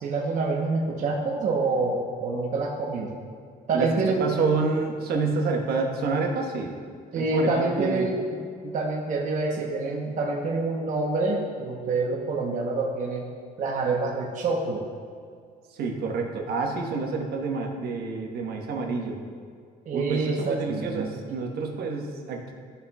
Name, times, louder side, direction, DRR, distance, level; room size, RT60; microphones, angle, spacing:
voice 1, 0.0-3.1 3.7-4.3 7.1-13.3 13.6-14.8 19.9-21.1, right 3 dB, 50° right, -2 dB, 0.9 m, -27 dB
voice 2, 3.7-6.7 7.1-8.1 15.7-19.2 19.9-22.5, right 4 dB, 70° right, 1 dB, 1.2 m, -28 dB
13.5 x 5.6 x 2.3 m, 2.2 s
cardioid pair, 110°, 17 cm